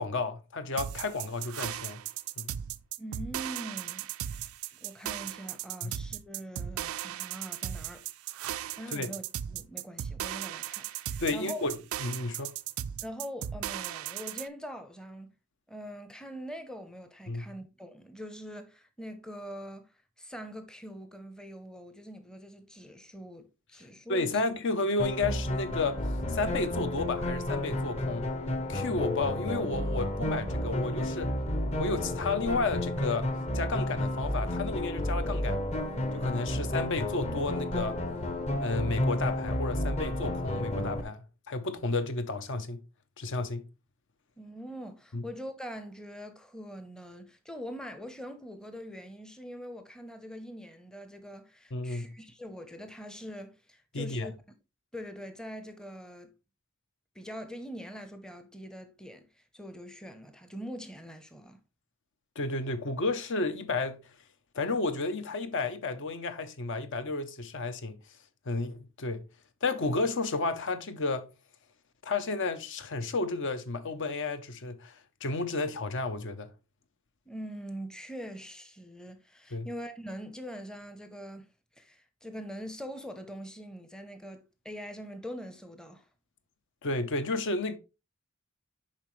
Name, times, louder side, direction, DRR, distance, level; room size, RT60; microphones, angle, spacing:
voice 1, 0.0-2.0 2.4-2.5 5.8-5.9 8.9-9.1 11.2-12.5 17.3-17.5 24.1-26.0 26.3-28.3 28.7-31.3 31.8-33.3 33.5-35.6 36.1-38.0 38.6-42.8 43.2-43.6 45.1-45.2 51.7-52.1 53.9-54.3 62.4-64.1 64.5-68.0 68.5-69.2 69.6-71.3 72.0-76.5 79.5-79.7 86.8-87.8, left 3 dB, 60° left, 0.7 m, -32 dB
sound 1, 0.8-14.5, right 11 dB, 75° right, 0.3 m, -37 dB
voice 2, 3.0-8.0 8.8-11.6 13.0-15.3 15.7-19.9 20.2-24.5 44.4-54.3 54.9-56.3 57.1-59.3 59.5-61.6 77.3-81.5 81.8-86.0, equal, 5° left, 0.6 m, -43 dB
sound 2, 25.0-41.0, left 1 dB, 30° left, 0.8 m, -31 dB
7.2 x 5.0 x 3.1 m
head